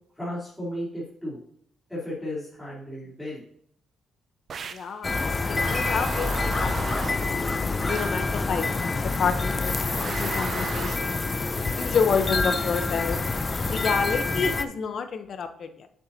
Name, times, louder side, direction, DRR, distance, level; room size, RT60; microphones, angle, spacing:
voice 1, 0.1-1.4 1.9-3.4, equal, 5° left, -10 dB, 3.3 m, -34 dB
sound 1, 4.5-4.9 5.6-7.3 7.9-8.3 10.0-11.1, right 6 dB, 55° right, 0.5 m, -36 dB
voice 2, 4.7-5.1 5.5-7.5 7.8-9.8 10.1-11.3 11.7-13.2 13.6-15.9, left 6 dB, 60° left, 9 dB, 0.9 m, -29 dB
sound 2, 5.0-14.6, left 3 dB, 30° left, 0.5 m, -27 dB
8.6 x 7.2 x 2.8 m, 0.68 s
cardioid pair, 90°, 0 cm